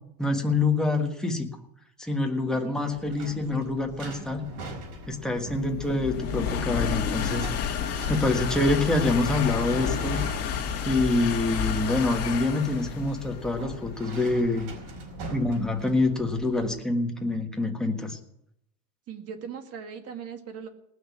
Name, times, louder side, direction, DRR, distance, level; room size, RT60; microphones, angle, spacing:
voice 1, 0.2-1.5 2.0-4.4 5.1-10.2 10.8-14.7 15.3-18.2, left 2 dB, ahead, 2 dB, 1.5 m, -26 dB
voice 2, 2.5-4.3 19.1-20.7, right 7 dB, 35° right, 6 dB, 1.8 m, -41 dB
file cabinet metal open close drawer nearby roomy, 2.7-16.4, right 3 dB, 55° right, 4.7 m, -44 dB
highspeed train passing, 3.3-16.6, left 7 dB, 35° left, 2.0 m, -31 dB
18.5 x 6.5 x 8.3 m, 0.79 s
supercardioid pair, 145°, 43 cm